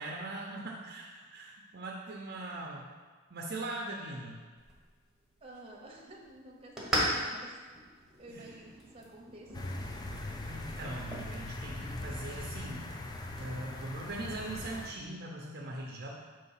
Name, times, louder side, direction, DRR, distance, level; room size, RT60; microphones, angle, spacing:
voice 1, 0.0-2.9 3.3-4.4 8.3-8.5 10.4-13.0 13.4-16.2, right 2 dB, 50° right, -2 dB, 0.7 m, -41 dB
sound 1, 4.6-13.5, equal, ahead, 1.3 m, -40 dB
voice 2, 5.4-7.6 8.2-9.8, right 1 dB, 30° right, -1 dB, 0.9 m, -51 dB
sound 2, 9.5-14.9, left 2 dB, 20° left, 0.4 m, -40 dB
5.5 x 3.3 x 5.7 m, 1.4 s
head